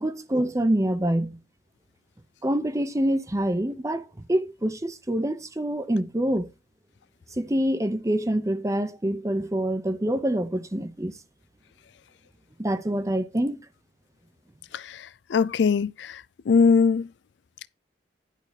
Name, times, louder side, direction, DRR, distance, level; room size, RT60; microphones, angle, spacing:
voice 1, 0.0-1.4 2.4-6.5 7.4-11.1 12.6-13.6, right 1 dB, 20° right, 0.8 m, -26 dB
voice 2, 15.3-16.2 16.5-17.1, left 5 dB, 85° left, 0.4 m, -20 dB
11.0 x 3.9 x 5.9 m
head